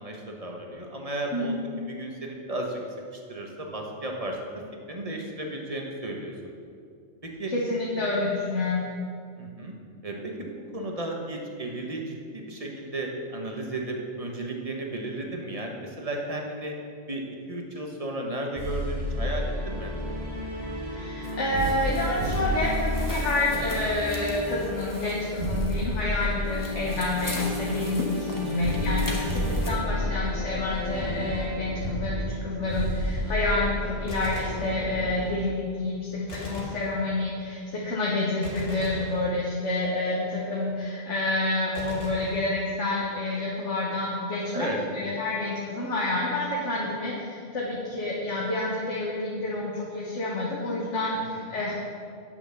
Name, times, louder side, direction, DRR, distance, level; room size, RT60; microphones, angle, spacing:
voice 1, 0.0-2.8 3.1-4.4 4.9-6.5 7.4-7.5 9.4-9.7 10.0-16.7 17.1-19.9 27.5-27.8 44.5-44.8 51.2-51.7, right 1 dB, 30° right, 1 dB, 1.2 m, -34 dB
voice 2, 7.5-8.9 21.0-51.7, left 2 dB, 90° left, -5 dB, 1.6 m, -28 dB
sound 1, 18.6-35.3, equal, 80° right, 2.7 m, -31 dB
sound 2, 21.2-29.7, left 1 dB, 15° left, 1.2 m, -39 dB
Gunshot gunfire, 34.1-35.3 36.3-37.5 38.4-39.9 41.8-43.1, equal, 60° left, 2.0 m, -40 dB
9.1 x 6.0 x 6.8 m, 2.3 s
omnidirectional pair, 1.2 m